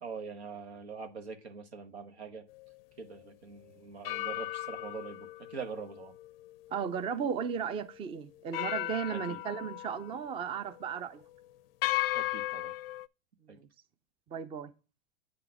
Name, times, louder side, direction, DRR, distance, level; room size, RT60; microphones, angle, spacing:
voice 1, 0.0-2.4 3.0-6.1 9.1-9.4 12.1-12.7 13.5-13.6, right 5 dB, 90° right, 1.2 m, -43 dB
sound 1, 2.5-2.7 4.0-7.5 7.9-8.0 8.5-10.4 10.7-11.0 11.8-13.1, left 16 dB, 65° left, 0.5 m, -36 dB
voice 2, 6.7-11.2 13.6-13.7 14.3-14.7, right 7 dB, 15° right, 0.4 m, -35 dB
8.3 x 3.9 x 4.7 m
hypercardioid pair, 115°, 32 cm